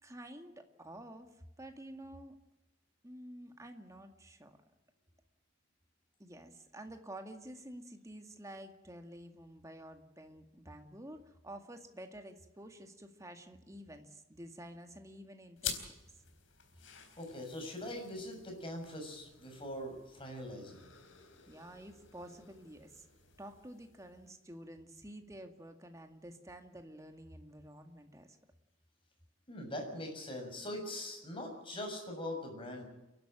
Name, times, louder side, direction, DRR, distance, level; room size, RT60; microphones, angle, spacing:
voice 1, 0.0-2.4 3.0-4.6 6.2-15.9 21.5-23.1 23.4-28.4, right 1 dB, 15° right, 6 dB, 2.1 m, -50 dB
sound 1, 15.6-24.5, left 8 dB, 80° left, 4.1 m, -49 dB
voice 2, 17.2-20.9 29.5-32.8, left 1 dB, 25° left, 2 dB, 6.7 m, -42 dB
29.5 x 12.0 x 8.8 m, 1.0 s
head